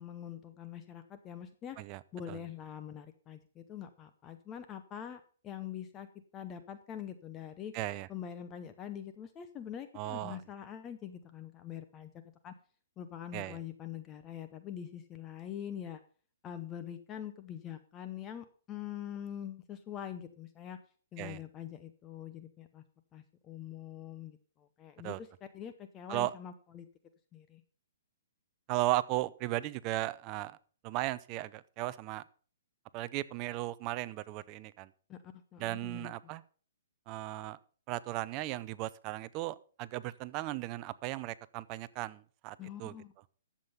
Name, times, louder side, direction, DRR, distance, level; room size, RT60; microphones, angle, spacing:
voice 1, 0.0-1.8 2.1-7.7 8.1-12.5 13.0-16.0 16.4-20.8 21.1-22.8 23.1-26.9 27.3-27.6 35.1-36.1 42.6-43.1, left 9 dB, 20° left, 9 dB, 0.7 m, -44 dB
voice 2, 7.7-8.1 9.9-10.4 13.3-13.6 21.2-21.4 25.0-25.2 26.1-26.3 28.7-30.6 30.8-32.2 32.9-34.9 35.6-36.4 37.1-37.6 37.9-42.9, right 17 dB, 25° right, 16 dB, 0.5 m, -36 dB
11.5 x 7.4 x 5.5 m, 0.42 s
hypercardioid pair, 160°, 0 cm